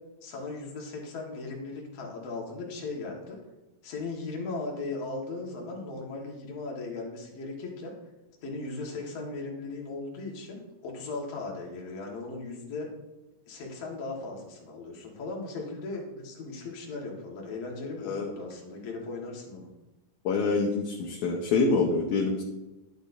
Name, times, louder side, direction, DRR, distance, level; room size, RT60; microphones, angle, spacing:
voice 1, 0.2-3.4 3.8-7.9 8.4-12.9 13.5-19.7, left 3 dB, 55° left, -1 dB, 2.4 m, -37 dB
voice 2, 20.3-22.4, left 4 dB, 70° left, 0 dB, 2.1 m, -26 dB
11.0 x 8.3 x 2.6 m, 1.0 s
omnidirectional pair, 3.9 m